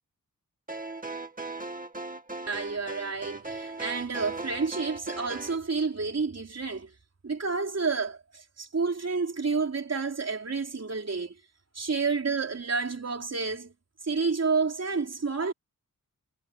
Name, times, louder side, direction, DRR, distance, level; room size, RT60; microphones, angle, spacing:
sound 1, 0.7-5.6, right 3 dB, 25° right, 2.5 m, -38 dB
voice 1, 2.5-6.9 7.2-11.3 11.7-13.7 14.1-15.5, right 4 dB, 50° right, 4.1 m, -30 dB
wide cardioid pair, 90°, 33 cm